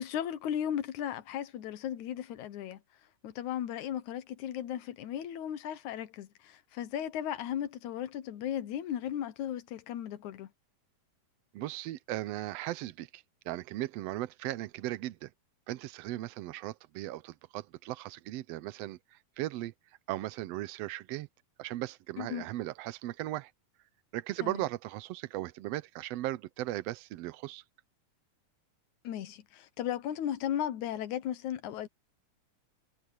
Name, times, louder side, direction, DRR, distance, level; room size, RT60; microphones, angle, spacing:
voice 1, 0.0-2.8 3.2-10.5 22.2-22.5 24.4-24.6 29.0-31.9, left 10 dB, 70° left, 2.5 m, -36 dB
voice 2, 11.5-15.3 15.7-19.7 20.1-21.3 21.6-23.5 24.1-27.6, right 16 dB, 85° right, 1.4 m, -37 dB
omnidirectional pair, 3.6 m